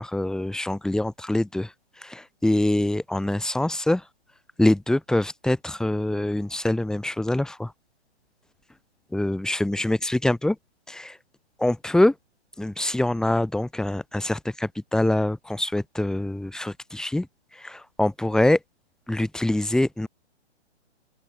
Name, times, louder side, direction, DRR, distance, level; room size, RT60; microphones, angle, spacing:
voice 1, 0.0-1.7 2.0-4.0 4.6-7.7 9.1-10.6 10.9-11.2 11.6-12.1 12.6-17.3 17.6-18.6 19.1-20.1, left 1 dB, ahead, 2.5 m, -24 dB
open air
figure-of-eight pair, 130°, 34 cm